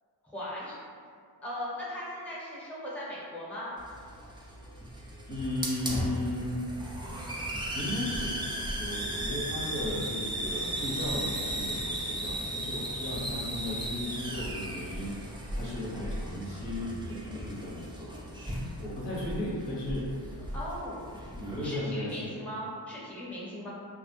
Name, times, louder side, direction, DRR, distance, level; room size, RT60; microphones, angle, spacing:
voice 1, 0.2-0.8 1.4-3.8 20.5-21.1 21.6-23.7, equal, 5° left, -6 dB, 0.7 m, -38 dB
Hiss, 3.8-21.7, right 1 dB, 15° right, 0.3 m, -36 dB
voice 2, 5.3-6.6 7.7-8.4 8.7-18.2 18.8-20.5 21.3-22.3, left 1 dB, 80° left, -6 dB, 0.8 m, -36 dB
2.2 x 2.1 x 2.9 m, 2.2 s
cardioid pair, 60°, 41 cm